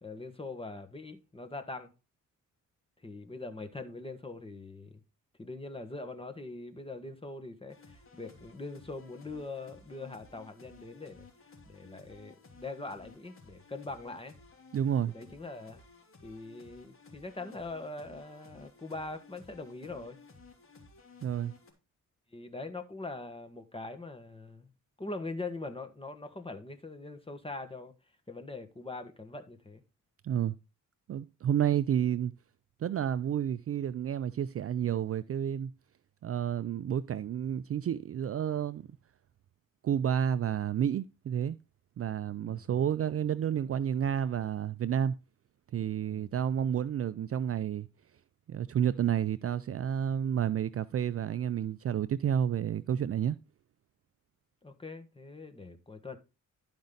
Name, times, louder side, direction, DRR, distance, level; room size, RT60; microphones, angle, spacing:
voice 1, 0.0-1.9 3.0-4.9 5.4-11.3 11.7-14.3 15.1-15.8 16.2-20.2 22.3-24.7 25.0-27.9 28.3-29.8 42.4-42.6 46.1-46.3 54.6-56.2, left 3 dB, 15° left, 1.6 m, -42 dB
sound 1, 7.7-21.7, left 3 dB, 40° left, 3.0 m, -56 dB
voice 2, 14.7-15.1 21.2-21.5 30.2-30.6 31.1-32.3 32.8-35.7 36.2-38.9 39.8-41.6 42.0-45.2 45.7-47.9 48.5-53.4, right 9 dB, 45° right, 0.4 m, -30 dB
12.0 x 5.3 x 3.9 m
cardioid pair, 100°, 33 cm